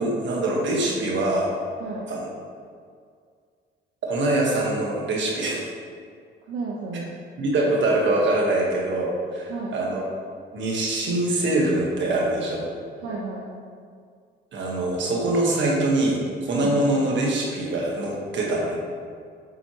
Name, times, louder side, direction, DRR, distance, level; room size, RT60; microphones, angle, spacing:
voice 1, 0.0-1.5 2.1-2.3 4.0-5.7 7.4-10.0 10.5-12.7 14.5-18.8, right 2 dB, 70° right, -2 dB, 1.5 m, -24 dB
voice 2, 1.8-2.1 6.4-7.1 9.5-9.8 13.0-13.5 16.5-16.8, right 3 dB, 85° right, -5 dB, 0.9 m, -32 dB
7.9 x 4.3 x 3.0 m, 2.1 s
cardioid pair, 90°, 20 cm